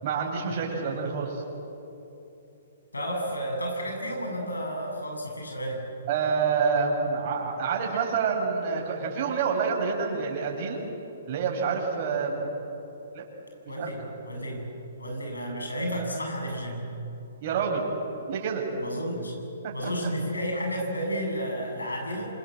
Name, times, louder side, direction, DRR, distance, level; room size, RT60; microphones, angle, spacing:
voice 1, 0.0-1.4 6.1-10.8 11.3-12.5 13.1-13.3 13.8-13.9 17.4-17.9 18.3-18.7 19.6-19.7, right 5 dB, 45° right, -1 dB, 7.0 m, -27 dB
voice 2, 2.9-5.9 13.7-14.6 15.0-16.9 18.8-19.3 19.7-22.3, equal, 90° left, 1 dB, 7.9 m, -32 dB
27.5 x 26.5 x 7.9 m, 2.9 s
figure-of-eight pair, 125°, 0 cm